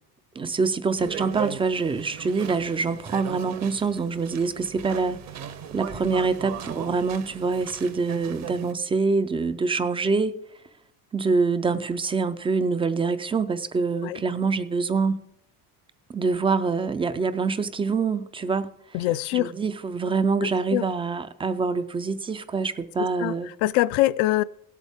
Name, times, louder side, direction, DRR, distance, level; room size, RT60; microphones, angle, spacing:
voice 1, 0.4-5.2 5.7-10.4 11.1-15.2 16.1-18.7 19.3-23.5, right 4 dB, 15° right, 11 dB, 0.3 m, -25 dB
sound 1, 1.0-8.7, right 8 dB, 35° right, 0.7 m, -38 dB
voice 2, 18.9-19.5 20.4-20.8 23.2-24.4, left 16 dB, 65° left, 15 dB, 0.5 m, -24 dB
17.0 x 8.3 x 3.5 m, 0.78 s
cardioid pair, 130°, 47 cm